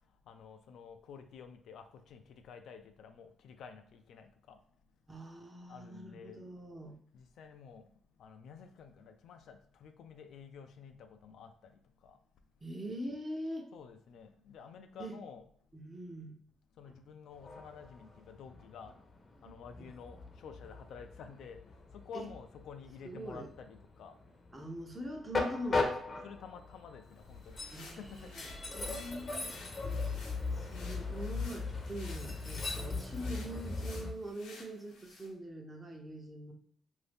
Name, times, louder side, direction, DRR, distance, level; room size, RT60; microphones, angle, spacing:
voice 1, 0.3-4.6 5.7-6.4 7.1-7.9 8.2-12.2 13.7-15.4 16.8-18.9 19.4-21.6 21.9-24.2 26.2-27.6 28.0-28.3, left 6 dB, 75° left, 0.3 m, -51 dB
voice 2, 5.1-7.0 12.6-13.7 15.0-15.2 15.7-16.3 16.9-17.0 19.4-19.9 22.1-22.3 23.0-23.5 24.5-26.3 27.7-29.5 30.5-36.5, equal, 20° right, 0.7 m, -43 dB
Train, 17.3-34.1, left 3 dB, 35° left, 0.6 m, -39 dB
sound 1, 27.1-35.3, left 3 dB, 90° left, 0.8 m, -54 dB
2.6 x 2.6 x 3.5 m
cardioid pair, 90°, 0 cm